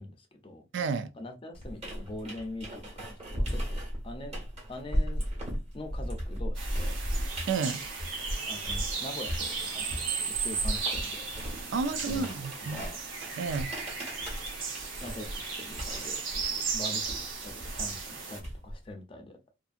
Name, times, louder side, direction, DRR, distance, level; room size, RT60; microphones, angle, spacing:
voice 1, 0.0-0.6 1.2-4.4 4.7-5.2 5.7-7.0 8.5-11.3 12.0-12.3 12.7-13.0 15.0-19.4, left 1 dB, 30° left, 0.5 m, -43 dB
voice 2, 0.7-1.1 7.5-7.8 11.7-12.9 13.4-13.7, right 5 dB, 65° right, 0.3 m, -31 dB
sound 1, 1.5-8.9 9.3-18.9, equal, 35° right, 1.3 m, -36 dB
sound 2, 6.5-18.4, right 5 dB, 85° right, 0.8 m, -35 dB
2.6 x 2.6 x 2.4 m
head